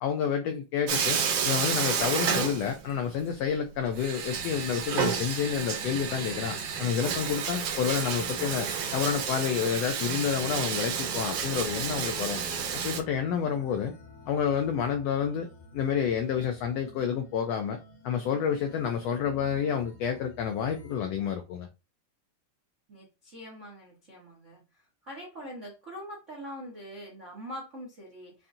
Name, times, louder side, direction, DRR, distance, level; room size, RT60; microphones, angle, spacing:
voice 1, 0.0-1.2 1.4-12.4 12.8-13.9 14.3-15.5 15.7-17.8 18.0-21.7, left 8 dB, 85° left, 1.4 m, -29 dB
Bathtub (filling or washing), 0.9-3.2 3.4-3.5 4.0-13.0, right 6 dB, 80° right, 2.3 m, -31 dB
sound 1, 8.0-21.2, left 3 dB, 65° left, 1.5 m, -51 dB
voice 2, 22.9-24.6 25.0-28.3, equal, 65° right, 0.7 m, -43 dB
5.5 x 2.5 x 2.6 m
omnidirectional pair, 3.5 m